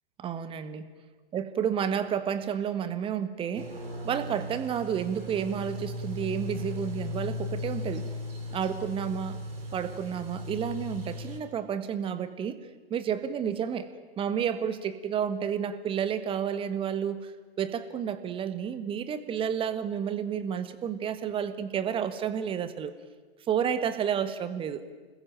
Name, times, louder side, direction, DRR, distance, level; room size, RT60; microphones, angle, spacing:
voice 1, 0.2-0.9 1.3-3.7 4.0-8.1 8.5-9.4 9.7-12.6 12.9-13.9 14.2-17.3 17.6-22.9 23.5-24.8, right 8 dB, 15° right, 13 dB, 1.5 m, -30 dB
sound 1, 3.5-11.4, left 1 dB, 60° right, 5.6 m, -37 dB
26.0 x 21.0 x 9.1 m, 1.4 s
figure-of-eight pair, 110°, 33 cm